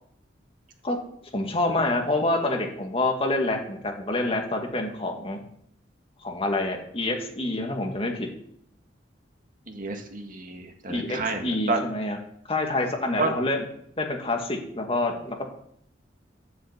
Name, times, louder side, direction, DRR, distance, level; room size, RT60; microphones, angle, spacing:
voice 1, 1.3-5.4 6.2-8.3 10.9-12.2 12.5-13.6 14.0-15.5, left 2 dB, 35° left, 2 dB, 2.1 m, -27 dB
voice 2, 9.7-11.8 13.2-13.3, right 3 dB, 50° right, 4 dB, 1.8 m, -29 dB
11.0 x 7.7 x 8.2 m, 0.67 s
head